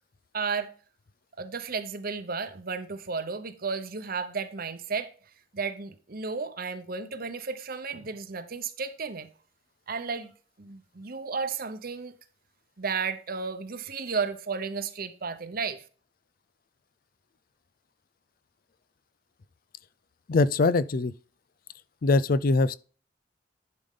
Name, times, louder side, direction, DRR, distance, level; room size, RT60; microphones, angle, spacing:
voice 1, 0.3-0.7 1.4-5.1 5.5-9.3 9.9-10.3 10.6-12.1 12.8-15.8, right 5 dB, 50° right, 0.9 m, -33 dB
voice 2, 20.3-21.1 22.0-22.8, left 3 dB, 50° left, 0.5 m, -22 dB
11.0 x 5.2 x 3.7 m
head